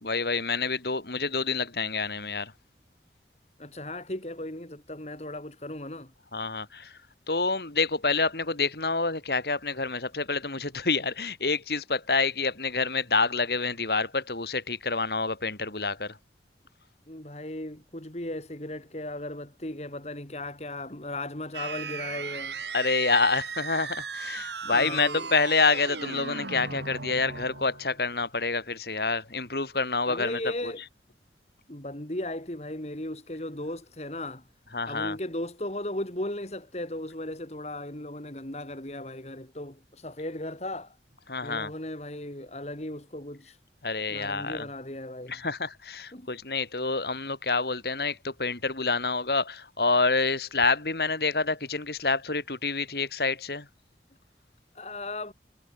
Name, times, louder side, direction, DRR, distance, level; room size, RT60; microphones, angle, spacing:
voice 1, 0.0-2.5 6.3-7.0 7.3-16.2 22.7-30.7 34.7-35.2 41.3-41.7 43.8-44.7 45.3-53.7, left 4 dB, 60° left, 2.5 m, -27 dB
voice 2, 3.6-6.1 17.1-22.6 24.7-25.3 30.1-30.8 31.7-34.4 34.8-41.0 41.4-43.6 44.1-45.4 46.1-46.3 54.7-55.3, left 1 dB, 35° left, 2.6 m, -36 dB
sound 1, 21.5-28.0, right 5 dB, 75° right, 4.6 m, -37 dB
head